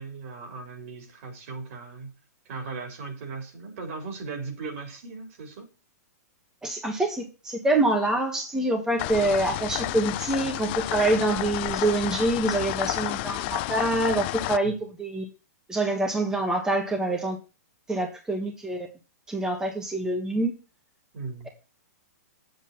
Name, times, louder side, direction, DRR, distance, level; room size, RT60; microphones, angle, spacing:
voice 1, 0.0-2.1 2.5-5.7 14.6-14.9 21.1-21.5, right 4 dB, 55° right, 4 dB, 3.9 m, -38 dB
voice 2, 6.6-15.3 15.7-17.4 17.9-18.9 19.3-20.5, right 2 dB, 5° right, 2 dB, 1.5 m, -26 dB
sound 1, 9.0-14.6, left 19 dB, 40° left, 0.4 m, -31 dB
8.1 x 7.9 x 4.3 m, 0.32 s
hypercardioid pair, 140°, 9 cm